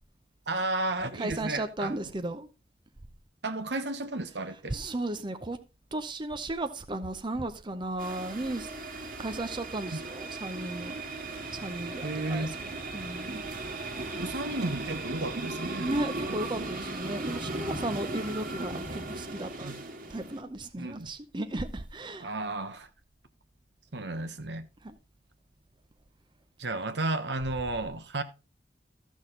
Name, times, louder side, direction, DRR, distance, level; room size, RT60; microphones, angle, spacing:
voice 1, 0.5-2.1 3.4-4.8 9.9-10.0 12.0-12.5 14.2-15.9 16.2-16.7 19.6-19.8 20.7-21.1 22.2-22.9 23.9-24.7 26.6-28.2, right 2 dB, 75° right, 1.1 m, -33 dB
voice 2, 1.1-2.5 4.7-5.6 5.9-8.7 9.2-11.1 11.5-13.4 15.8-19.8 20.1-22.3 24.8-24.9, right 2 dB, 25° right, 0.7 m, -35 dB
sound 1, 8.0-20.4, right 2 dB, 55° right, 1.9 m, -37 dB
14.0 x 6.4 x 3.8 m
head